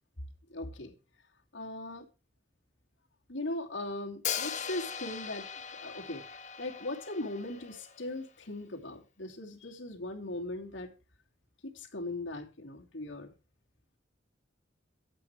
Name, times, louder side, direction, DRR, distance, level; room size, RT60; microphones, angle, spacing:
voice 1, 0.5-0.9 1.5-2.0 3.3-5.5 5.8-6.2 6.6-10.9 11.6-13.3, left 2 dB, 80° left, 1 dB, 2.7 m, -39 dB
Hi-hat, 4.2-8.2, left 8 dB, 40° left, 1.2 m, -39 dB
13.0 x 8.6 x 4.6 m, 0.31 s
head